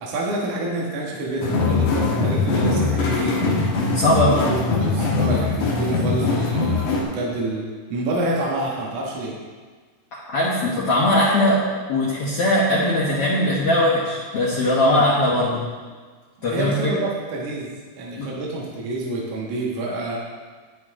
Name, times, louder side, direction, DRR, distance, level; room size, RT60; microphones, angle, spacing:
voice 1, 0.0-3.4 4.0-4.6 4.8-9.3 14.8-15.0 16.4-20.2, right 2 dB, 60° right, -4 dB, 2.5 m, -28 dB
sound 1, 1.4-7.0, left 3 dB, 60° left, 2.7 m, -21 dB
voice 2, 3.9-4.4 10.1-11.6 11.9-15.6 16.4-17.0 18.2-18.3, left 1 dB, 80° left, -6 dB, 1.3 m, -20 dB
10.5 x 10.0 x 3.7 m, 1.5 s
omnidirectional pair, 4.6 m